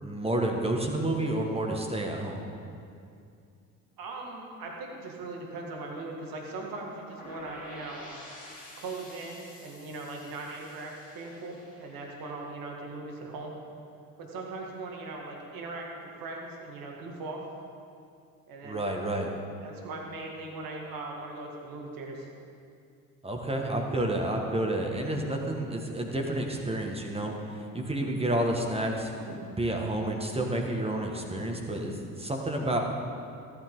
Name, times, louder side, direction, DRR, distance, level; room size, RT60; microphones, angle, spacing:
voice 1, 0.0-2.4 18.6-19.3 23.2-29.1 29.5-32.8, right 1 dB, 15° right, 1 dB, 1.8 m, -30 dB
voice 2, 4.0-8.1 8.8-13.5 14.2-17.4 18.5-18.8 19.6-22.3 29.2-29.4, right 3 dB, 55° right, 0 dB, 2.1 m, -39 dB
sound 1, 7.2-13.0, left 1 dB, 20° left, 2.7 m, -49 dB
14.0 x 9.7 x 3.9 m, 2.4 s
hypercardioid pair, 60°, 41 cm